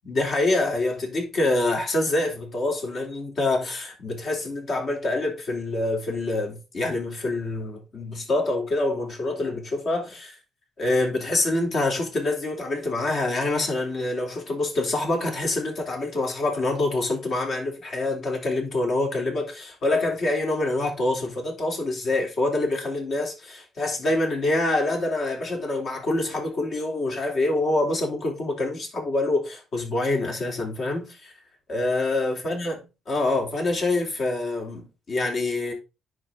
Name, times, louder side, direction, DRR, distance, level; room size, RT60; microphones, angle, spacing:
voice 1, 0.0-10.3 10.8-31.3 31.7-35.7, left 2 dB, 55° left, 3.2 m, -26 dB
10.0 x 4.5 x 3.8 m
cardioid pair, 90°, 0 cm